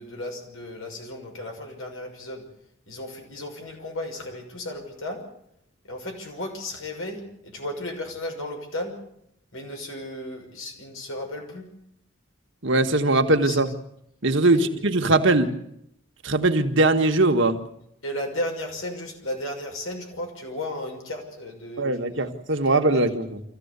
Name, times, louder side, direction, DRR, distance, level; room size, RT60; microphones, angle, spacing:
voice 1, 0.0-2.4 2.9-5.2 5.8-9.0 9.5-11.7 13.4-13.6 14.5-14.6 18.0-22.2 22.9-23.0, left 1 dB, 75° left, 2 dB, 6.0 m, -34 dB
voice 2, 12.6-13.7 14.2-15.5 16.2-17.6 21.8-23.4, right 2 dB, 60° right, 5 dB, 1.8 m, -21 dB
25.0 x 15.5 x 8.3 m, 0.76 s
head